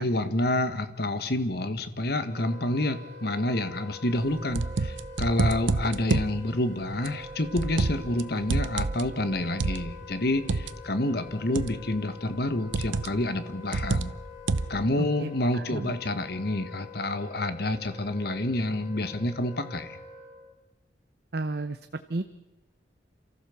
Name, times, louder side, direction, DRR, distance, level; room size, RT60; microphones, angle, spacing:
voice 1, 0.0-14.1 14.7-20.0, left 1 dB, 55° left, 10 dB, 1.5 m, -28 dB
Wind instrument woodwind instrument, 2.3-20.5, left 3 dB, 40° left, 6.3 m, -45 dB
sound 1, 4.2-6.4 7.1-8.2 8.5-10.7 11.6-11.9 12.7-13.2 13.7-14.8, right 3 dB, 90° right, 0.8 m, -28 dB
voice 2, 15.0-16.0 21.3-22.2, right 2 dB, 55° right, 9 dB, 0.8 m, -33 dB
28.5 x 14.5 x 7.2 m, 1.1 s
head